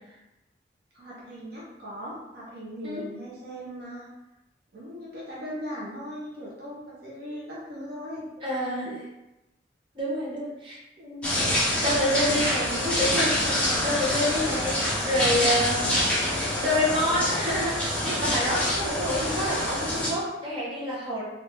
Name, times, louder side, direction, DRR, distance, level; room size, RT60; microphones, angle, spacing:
voice 1, 0.9-4.1 4.7-8.3, equal, 60° right, -6 dB, 0.9 m, -39 dB
voice 2, 8.4-9.0 9.9-11.3 11.8-16.0 16.6-21.2, left 1 dB, 30° right, -7 dB, 1.0 m, -28 dB
sound 1, 11.2-20.1, left 1 dB, 5° left, 0.8 m, -26 dB
3.3 x 2.6 x 3.0 m, 0.94 s
head